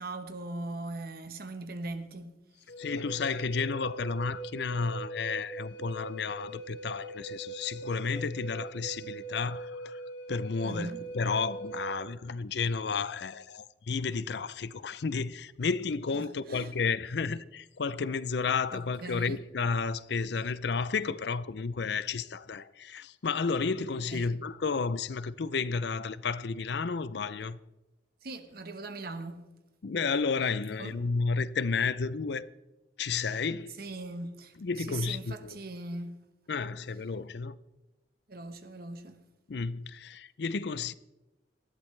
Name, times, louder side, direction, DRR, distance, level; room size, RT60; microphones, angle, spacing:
voice 1, 0.0-2.3 10.6-11.0 16.2-16.7 18.7-19.4 24.1-24.4 28.2-29.5 30.8-31.0 33.8-36.2 38.3-39.2, right 2 dB, 50° right, 1.1 m, -40 dB
Wind instrument woodwind instrument, 2.7-12.0, right 2 dB, 85° left, 6.1 m, -42 dB
voice 2, 2.8-10.0 10.3-27.6 29.8-32.5 33.0-33.7 34.6-35.6 36.5-37.6 39.5-40.9, left 5 dB, 60° left, 0.5 m, -32 dB
19.5 x 13.5 x 3.3 m
head